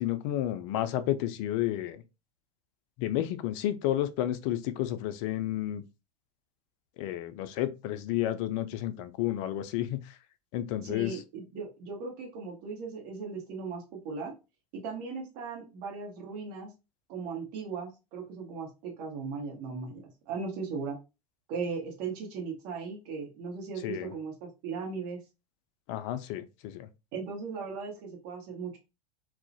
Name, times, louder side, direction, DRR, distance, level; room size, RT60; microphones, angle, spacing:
voice 1, 0.0-2.0 3.0-5.8 7.0-10.1 10.5-11.1 23.8-24.1 25.9-26.9, left 13 dB, 50° left, 0.4 m, -31 dB
voice 2, 10.8-14.4 14.7-16.7 17.1-21.0 21.5-25.2 27.1-28.8, right 5 dB, 55° right, 1.0 m, -38 dB
2.4 x 2.0 x 2.6 m
hypercardioid pair, 90°, 20 cm